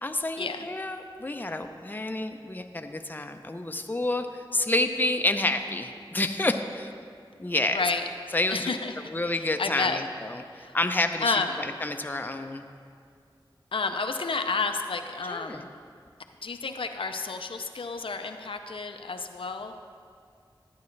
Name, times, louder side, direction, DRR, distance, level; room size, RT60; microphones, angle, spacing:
voice 1, 0.0-4.3 4.5-6.9 7.4-7.8 8.3-8.7 9.1-12.6 15.3-15.6, left 2 dB, 20° left, 6 dB, 0.5 m, -29 dB
voice 2, 7.7-8.0 8.5-9.0 9.2-10.0 10.6-10.7 11.2-11.6 13.7-15.7 16.4-19.7, left 4 dB, 85° left, 6 dB, 0.5 m, -30 dB
12.0 x 9.5 x 3.2 m, 2.2 s
wide cardioid pair, 55°, 9 cm